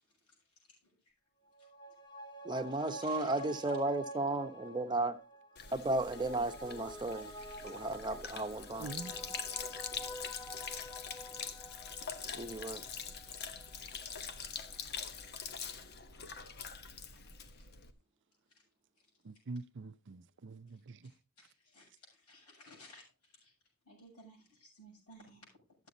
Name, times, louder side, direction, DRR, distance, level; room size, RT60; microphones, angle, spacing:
sound 1, 1.5-14.3 14.7-14.8, equal, 20° left, 1.3 m, -49 dB
voice 1, 2.4-5.2 5.7-7.3 7.6-8.9 12.3-12.8, right 2 dB, 20° right, 1.0 m, -34 dB
voice 2, 3.0-3.4 17.1-17.2 17.5-17.7 18.5-18.6 21.0-23.0 23.3-23.5 23.9-25.5, equal, 85° left, 7.2 m, -58 dB
Sink (filling or washing), 5.6-17.9, left 6 dB, 50° left, 1.1 m, -44 dB
voice 3, 8.8-9.1 19.3-21.0, right 3 dB, 55° right, 0.6 m, -45 dB
13.0 x 8.3 x 4.0 m
head